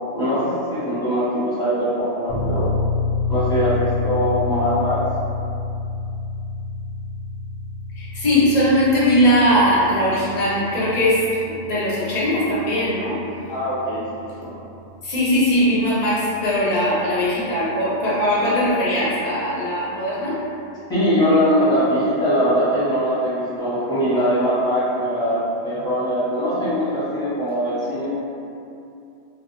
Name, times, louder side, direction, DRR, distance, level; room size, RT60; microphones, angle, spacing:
voice 1, 0.1-2.7 3.3-5.0 13.5-14.0 14.4-14.5 20.9-28.1, equal, 5° left, -13 dB, 0.8 m, -21 dB
sound 1, 2.3-16.7, left 3 dB, 55° right, 0.7 m, -29 dB
voice 2, 7.9-13.2 15.0-20.4, equal, 45° left, -7 dB, 0.6 m, -20 dB
2.4 x 2.1 x 2.9 m, 2.6 s
omnidirectional pair, 1.2 m